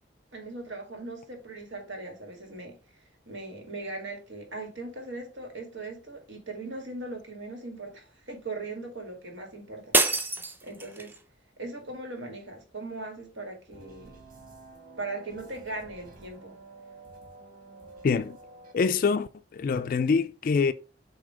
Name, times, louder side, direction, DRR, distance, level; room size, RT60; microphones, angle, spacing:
voice 1, 0.3-2.8 3.3-10.0 10.6-11.1 11.6-14.2 15.0-16.6, right 2 dB, 85° right, 2.1 m, -39 dB
sound 1, 9.9-11.2, right 2 dB, 10° right, 0.4 m, -26 dB
sound 2, 13.7-18.7, right 2 dB, 50° right, 1.3 m, -49 dB
voice 2, 18.0-18.4 18.7-20.7, left 5 dB, 50° left, 0.3 m, -25 dB
7.3 x 2.8 x 4.9 m
head